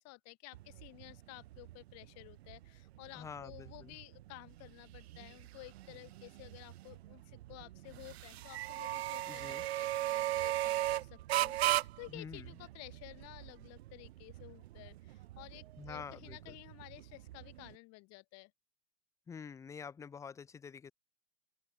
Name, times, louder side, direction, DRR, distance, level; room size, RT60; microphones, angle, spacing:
voice 1, 0.0-18.5, left 24 dB, 35° left, 3.7 m, -53 dB
sound 1, 0.5-17.7, right 15 dB, 50° right, 0.5 m, -39 dB
voice 2, 3.1-4.0 9.3-9.6 12.1-12.5 15.8-16.6 19.3-20.9, left 6 dB, 5° left, 0.5 m, -47 dB
open air
figure-of-eight pair, 105°, 42 cm